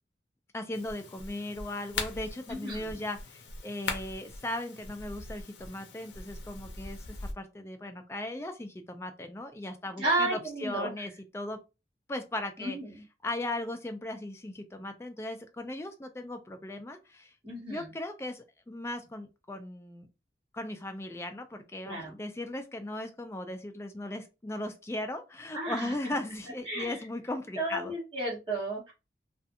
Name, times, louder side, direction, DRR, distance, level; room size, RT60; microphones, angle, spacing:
voice 1, 0.5-11.6 12.1-12.8 13.2-17.3 17.7-20.1 20.5-27.9, left 1 dB, 15° left, 6 dB, 0.3 m, -37 dB
sound 1, 0.7-7.3, left 3 dB, 85° left, 0.6 m, -41 dB
voice 2, 2.5-3.0 10.0-10.9 12.6-12.9 17.4-17.8 21.8-22.1 25.5-25.9 26.6-27.0 27.5-28.9, right 2 dB, 30° right, -7 dB, 1.4 m, -32 dB
2.5 x 2.3 x 2.6 m, 0.28 s
head